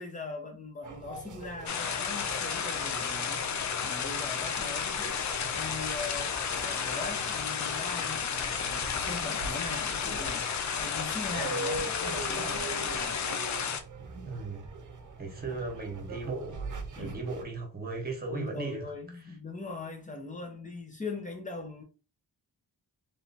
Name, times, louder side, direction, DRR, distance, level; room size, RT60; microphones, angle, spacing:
voice 1, 0.0-3.4 3.8-5.2 5.5-6.3 6.6-10.5 10.8-13.2 17.0-17.3 18.3-21.8, left 3 dB, 20° left, 1.0 m, -40 dB
sound 1, 0.8-17.4, right 3 dB, 50° right, 0.8 m, -42 dB
sound 2, 1.7-13.8, left 7 dB, 50° left, 0.6 m, -32 dB
voice 2, 14.1-14.7 15.2-16.6 17.0-18.9, right 3 dB, 25° right, 1.4 m, -36 dB
3.4 x 3.0 x 4.0 m
wide cardioid pair, 165°, 39 cm